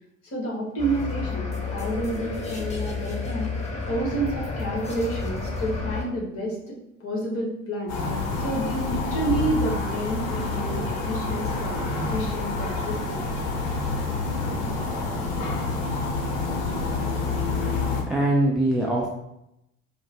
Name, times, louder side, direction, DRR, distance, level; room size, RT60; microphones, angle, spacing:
voice 1, 0.2-3.5 3.9-8.0 8.4-13.3, right 2 dB, 35° left, -2 dB, 1.4 m, -30 dB
sound 1, 0.8-6.0, left 4 dB, 15° left, 0.8 m, -31 dB
sound 2, 7.9-18.0, left 3 dB, 55° left, 0.8 m, -27 dB
voice 2, 18.1-19.1, right 1 dB, ahead, -3 dB, 0.4 m, -22 dB
4.5 x 2.1 x 2.9 m, 0.84 s
figure-of-eight pair, 65°, 39 cm